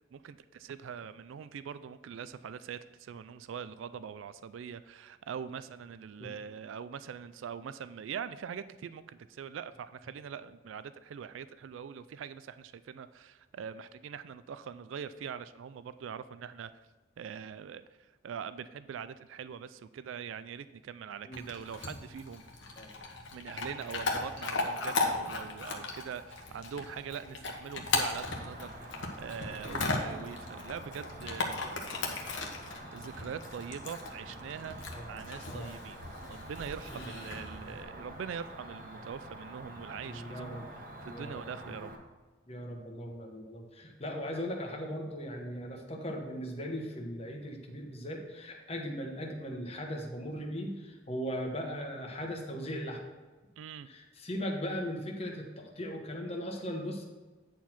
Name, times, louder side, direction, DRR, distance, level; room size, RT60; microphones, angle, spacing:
voice 1, 0.1-16.9 17.2-22.4 23.3-32.0 32.9-36.0 36.2-40.6 41.0-41.9 53.6-53.9, right 7 dB, 80° right, 14 dB, 0.3 m, -43 dB
Chewing mastication / Dog, 21.3-37.8, left 3 dB, 70° left, 1.2 m, -37 dB
Cricket, 28.1-42.0, right 1 dB, 45° right, 1.1 m, -47 dB
voice 2, 40.0-40.6 41.1-42.0 42.5-53.0 53.9-57.0, equal, 30° left, 2 dB, 1.1 m, -38 dB
9.4 x 4.5 x 5.8 m, 1.3 s
head